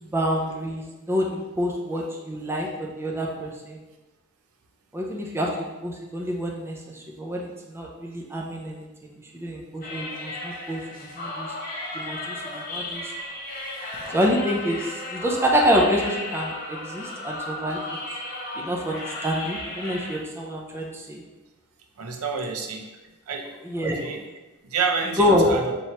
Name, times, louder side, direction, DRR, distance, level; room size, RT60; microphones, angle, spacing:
voice 1, 0.0-3.8 4.9-8.9 9.3-11.5 11.9-13.1 14.1-17.8 18.6-21.2 23.6-24.0 25.2-25.5, equal, 10° right, -1 dB, 0.4 m, -27 dB
sound 1, 9.8-20.2, left 2 dB, 40° left, 0.7 m, -35 dB
voice 2, 22.0-22.8 23.3-23.5 23.8-24.2 24.6-25.8, right 5 dB, 75° right, 3 dB, 0.5 m, -28 dB
4.5 x 3.0 x 2.8 m, 1.1 s
head